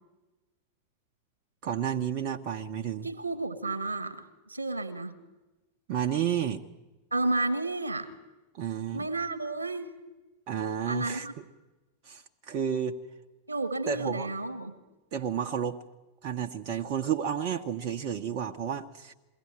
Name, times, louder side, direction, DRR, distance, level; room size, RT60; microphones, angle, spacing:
voice 1, 1.6-3.1 5.9-6.6 8.6-9.1 10.5-11.3 12.0-13.0 13.9-14.3 15.1-15.8 16.2-19.1, right 8 dB, 45° right, 3 dB, 0.9 m, -31 dB
voice 2, 3.0-5.1 7.1-8.1 8.9-9.9 10.9-11.3 13.5-14.7, right 2 dB, 80° right, 11 dB, 1.5 m, -31 dB
22.5 x 16.5 x 9.3 m, 1.1 s
figure-of-eight pair, 90°, 0 cm